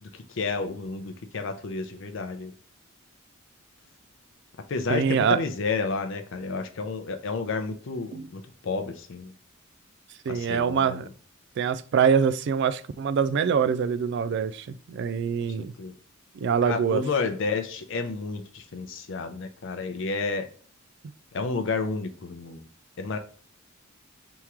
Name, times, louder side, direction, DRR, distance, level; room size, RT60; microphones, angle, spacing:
voice 1, 0.0-2.5 4.7-9.3 10.3-11.0 15.6-15.9 16.6-20.5 21.3-22.7 23.0-23.2, left 4 dB, 60° left, 0.5 m, -31 dB
voice 2, 4.9-5.4 8.1-8.3 10.3-11.0 11.6-15.7 16.4-17.0, right 6 dB, 55° right, 0.3 m, -24 dB
3.6 x 3.0 x 4.5 m
head